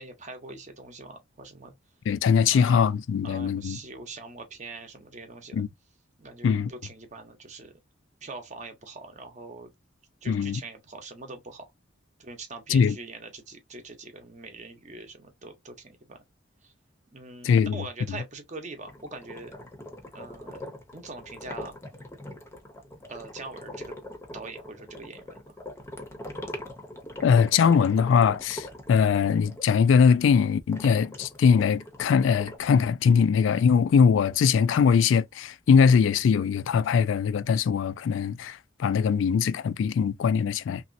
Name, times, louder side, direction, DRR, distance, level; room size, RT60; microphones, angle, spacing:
voice 1, 0.0-1.7 2.5-2.8 3.2-5.6 6.2-7.7 8.2-9.7 10.2-11.7 12.2-16.2 16.6-16.7 17.1-19.5 20.1-20.6 20.9-21.7 23.1-24.0 24.3-25.5, right 3 dB, 40° right, 0.8 m, -42 dB
voice 2, 2.1-3.8 5.5-5.7 6.4-6.7 10.3-10.6 12.7-13.0 17.4-17.8 27.2-40.8, left 6 dB, 70° left, 0.3 m, -21 dB
sound 1, 18.9-29.6 30.7-32.6, left 1 dB, 15° left, 0.7 m, -42 dB
3.0 x 2.7 x 2.5 m
head